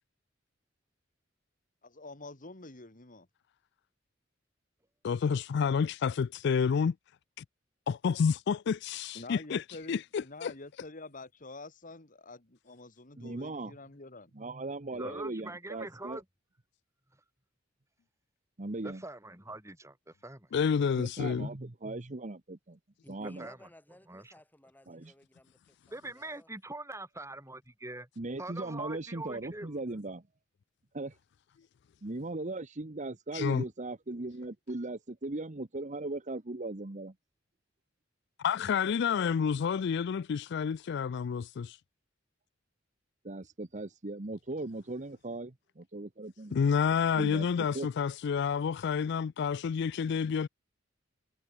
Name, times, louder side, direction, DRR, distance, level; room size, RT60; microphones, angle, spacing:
voice 1, 1.8-3.3 9.1-14.3 14.9-15.2, left 2 dB, 45° left, 2.4 m, -47 dB
voice 2, 5.0-6.9 7.4-7.5 7.9-9.6 9.9-10.5 20.5-21.5 33.3-33.6 38.4-41.8 46.5-50.5, left 6 dB, 60° left, 0.4 m, -29 dB
voice 3, 13.2-13.8 14.3-16.2 18.6-19.0 21.0-22.8 23.1-23.5 24.9-25.1 28.2-30.2 30.9-31.2 32.0-37.1 43.2-46.6 47.2-47.9, right 2 dB, 40° right, 1.1 m, -38 dB
voice 4, 15.0-16.2 18.8-20.5 23.4-23.6 24.1-24.3 25.9-28.1 28.4-30.0, right 2 dB, 15° right, 6.4 m, -43 dB
voice 5, 23.0-26.5, left 1 dB, 10° left, 7.5 m, -57 dB
head